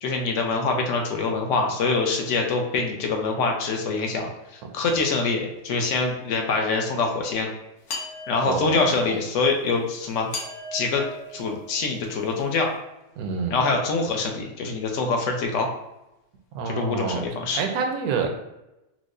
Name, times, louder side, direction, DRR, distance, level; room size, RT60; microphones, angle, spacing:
voice 1, 0.0-7.5 8.3-10.3 10.7-11.0 11.3-12.7 13.5-15.7 16.7-17.6, left 4 dB, 65° left, 2 dB, 0.9 m, -25 dB
sound 1, 7.9-9.0 10.3-12.2, left 2 dB, 90° left, 1.3 m, -37 dB
voice 2, 8.5-8.8 9.0-9.2 13.2-13.7 16.5-17.3 17.5-18.3, right 5 dB, 85° right, 3 dB, 1.1 m, -27 dB
4.5 x 2.0 x 2.5 m, 0.94 s
omnidirectional pair, 1.5 m